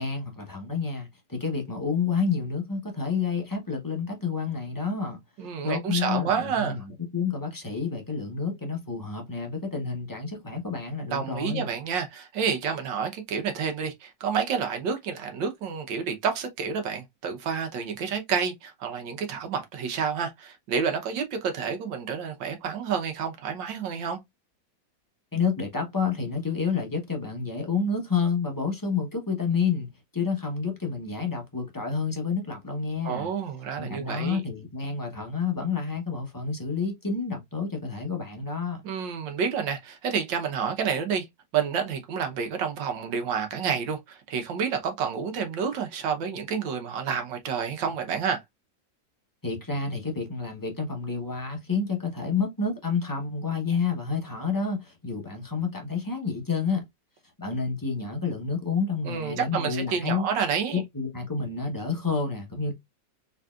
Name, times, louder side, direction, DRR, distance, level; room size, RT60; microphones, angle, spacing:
voice 1, 0.0-5.2 5.6-11.7 25.3-33.3 33.8-38.8 49.4-56.8 57.4-60.3 60.7-62.7, left 5 dB, 35° left, 0.3 m, -29 dB
voice 2, 5.4-6.8 11.1-24.2 33.0-34.4 38.8-41.3 41.5-48.4 59.0-60.8, right 6 dB, 75° right, 1.5 m, -29 dB
4.0 x 3.4 x 2.3 m
omnidirectional pair, 2.0 m